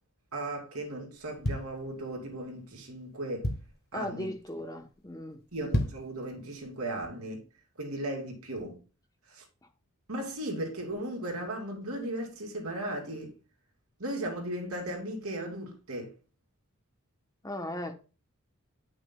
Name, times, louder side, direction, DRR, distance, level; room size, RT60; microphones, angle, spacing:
voice 1, 0.3-3.5 3.9-4.3 5.5-7.4 7.8-8.8 9.3-9.4 10.1-13.3 14.0-16.1, right 1 dB, 75° right, 2.5 m, -36 dB
sound 1, 1.1-2.4 2.9-3.0 3.2-3.9 4.4-4.6 4.9-5.0 5.5-6.2 6.6-6.7, equal, 45° left, 1.3 m, -32 dB
voice 2, 3.9-5.4 17.4-17.9, left 1 dB, 15° left, 0.9 m, -37 dB
9.9 x 6.0 x 2.2 m
head